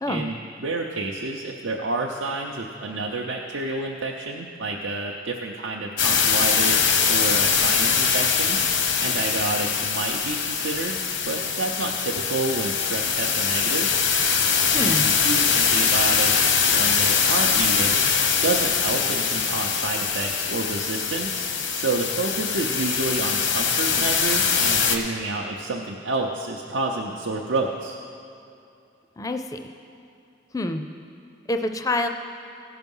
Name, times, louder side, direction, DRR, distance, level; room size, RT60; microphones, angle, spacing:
voice 1, 0.1-8.6 9.0-11.0 11.2-13.9 14.7-18.0 18.4-28.0, right 3 dB, 90° right, -1 dB, 0.7 m, -29 dB
sound 1, 6.0-25.0, left 6 dB, 80° left, 0.9 m, -22 dB
voice 2, 14.7-15.0 29.2-29.6 30.5-30.8 31.5-32.1, left 2 dB, 20° left, 6 dB, 0.4 m, -26 dB
17.0 x 5.8 x 5.4 m, 2.7 s
head